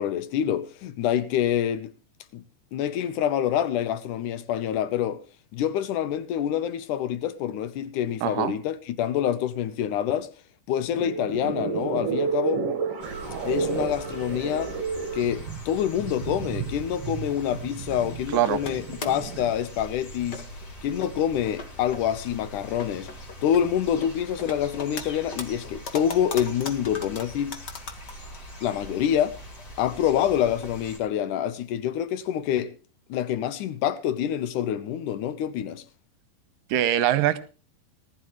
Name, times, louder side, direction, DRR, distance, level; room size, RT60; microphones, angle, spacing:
voice 1, 0.0-1.9 2.3-2.4 2.7-5.2 5.5-10.3 10.7-12.6 13.4-14.7 15.1-20.4 20.8-23.1 23.4-27.6 28.6-29.4 29.8-32.7 33.1-35.8, left 10 dB, 70° left, 2.1 m, -26 dB
voice 2, 8.2-8.5 18.3-18.6 36.7-37.4, right 12 dB, 75° right, 2.4 m, -22 dB
sound 1, 10.8-19.5, right 5 dB, 50° right, 2.2 m, -31 dB
sound 2, 13.0-31.0, equal, 30° left, 3.0 m, -43 dB
sound 3, 17.4-17.9 18.4-19.3 19.8-19.9 20.3-20.7 21.0-21.1 21.5-22.0 22.6-23.6 24.0-25.0 25.3-28.4 28.6-28.7 29.2-29.3 29.6-29.7 30.6-30.7 31.1-31.2, left 4 dB, 50° left, 1.3 m, -37 dB
19.0 x 12.5 x 3.1 m
omnidirectional pair, 4.3 m